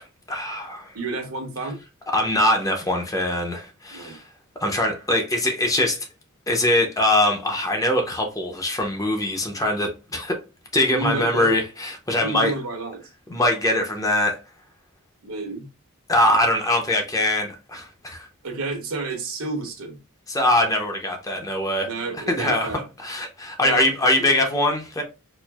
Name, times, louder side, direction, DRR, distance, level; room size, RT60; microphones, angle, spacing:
voice 1, 0.0-0.9 2.1-4.2 4.6-6.0 6.5-10.4 10.7-12.5 13.3-14.4 16.1-18.3 20.3-21.9 22.3-25.0, left 1 dB, 15° left, 0.7 m, -22 dB
voice 2, 0.9-1.8 3.9-4.2 10.9-11.6 12.2-13.0 15.2-15.7 18.4-20.0 21.8-22.8 23.6-23.8 24.2-24.3, right 3 dB, 75° right, 1.1 m, -30 dB
4.3 x 2.5 x 2.3 m
head